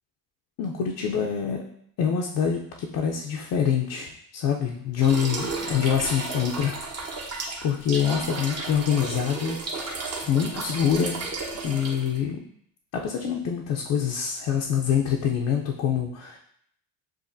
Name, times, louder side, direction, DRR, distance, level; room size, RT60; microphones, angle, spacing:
voice 1, 0.6-1.6 2.0-6.8 7.1-9.6 10.3-11.3 11.6-12.4 12.9-16.4, left 8 dB, 55° left, 0 dB, 0.6 m, -25 dB
sound 1, 5.0-12.2, right 3 dB, 40° right, 1.0 m, -33 dB
7.3 x 2.5 x 2.6 m, 0.69 s
cardioid pair, 130°, 38 cm